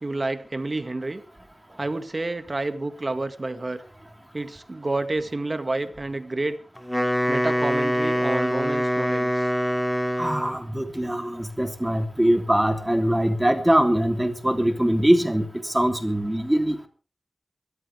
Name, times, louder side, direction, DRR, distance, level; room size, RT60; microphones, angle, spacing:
voice 1, 0.0-1.2 1.8-3.8 4.3-6.6 7.3-9.5, right 2 dB, 40° right, 9 dB, 1.9 m, -29 dB
Wind instrument woodwind instrument, 6.8-10.6, equal, 10° left, 2.6 m, -24 dB
voice 2, 10.2-16.9, right 1 dB, 15° right, 5 dB, 3.1 m, -22 dB
23.0 x 14.0 x 3.5 m, 0.37 s
wide cardioid pair, 65°, 0 cm